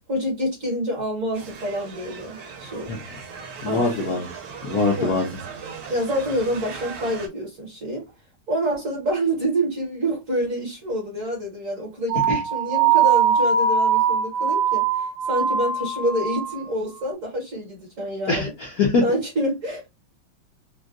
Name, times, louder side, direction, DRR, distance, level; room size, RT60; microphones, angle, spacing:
voice 1, 0.1-3.0 3.6-4.2 5.0-5.2 5.9-8.0 8.5-18.5 19.0-19.9, right 1 dB, 45° right, 1.2 m, -27 dB
sound 1, 1.3-7.3, right 5 dB, 65° right, 1.2 m, -38 dB
voice 2, 3.6-4.3 4.6-5.3 12.3-12.4 18.3-19.0, left 3 dB, 65° left, 0.9 m, -23 dB
sound 2, 12.1-16.7, right 7 dB, 80° right, 0.7 m, -21 dB
3.7 x 2.2 x 2.3 m
omnidirectional pair, 2.3 m